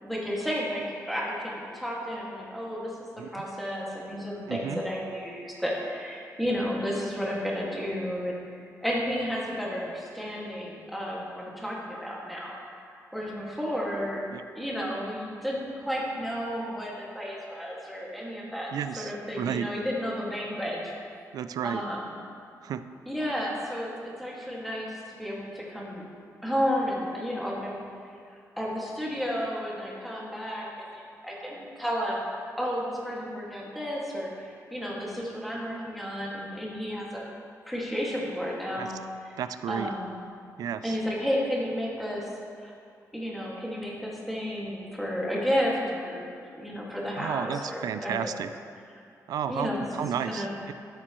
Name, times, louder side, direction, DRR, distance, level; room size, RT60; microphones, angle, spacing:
voice 1, 0.0-8.3 8.8-12.5 12.9-14.2 14.5-18.7 19.0-20.8 21.6-22.2 23.1-26.0 26.4-27.8 28.2-30.6 30.9-32.2 32.6-37.2 37.7-39.0 39.3-39.4 39.7-40.2 40.8-42.3 42.6-42.7 43.1-46.3 46.5-48.3 49.5-49.8 50.2-50.5, equal, ahead, -5 dB, 2.0 m, -32 dB
voice 2, 4.5-4.8 14.3-14.4 18.7-19.7 21.3-21.9 22.6-22.8 38.8-38.9 39.4-39.9 40.6-41.0 47.2-48.5 49.3-50.7, right 8 dB, 80° right, 12 dB, 0.4 m, -32 dB
13.5 x 8.4 x 3.1 m, 2.4 s
wide cardioid pair, 125°, 6 cm